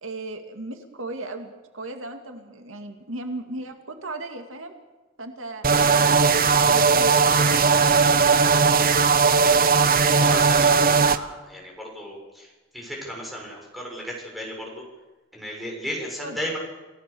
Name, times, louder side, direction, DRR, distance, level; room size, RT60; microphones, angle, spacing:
voice 1, 0.0-4.7 5.2-5.7 5.9-8.9 16.2-16.4, right 2 dB, 85° right, 6 dB, 2.4 m, -36 dB
sound 1, 5.6-11.2, right 5 dB, 45° right, 1.0 m, -18 dB
voice 2, 10.1-12.5 12.7-14.8 15.3-16.6, equal, ahead, -2 dB, 7.2 m, -34 dB
28.0 x 17.0 x 7.1 m, 1.2 s
head